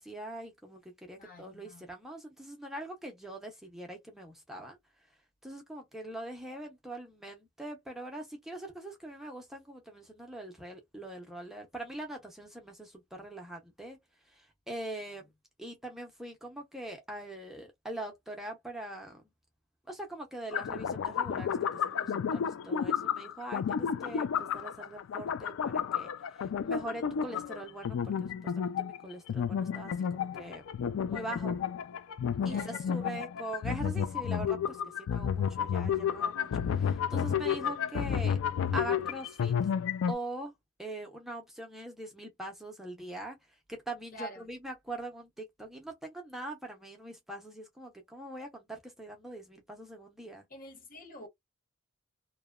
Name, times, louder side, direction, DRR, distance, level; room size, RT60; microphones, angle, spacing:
voice 1, 0.0-4.8 5.4-14.0 14.3-15.3 15.6-19.2 19.9-30.6 31.1-31.6 32.4-38.4 38.7-39.7 40.1-40.5 40.8-50.4, right 1 dB, ahead, 0.5 m, -42 dB
voice 2, 1.2-1.9 32.5-32.8 44.1-44.5 50.5-51.3, equal, 45° left, 0.8 m, -46 dB
sound 1, 20.5-40.1, left 8 dB, 80° left, 0.3 m, -31 dB
2.8 x 2.1 x 2.2 m
head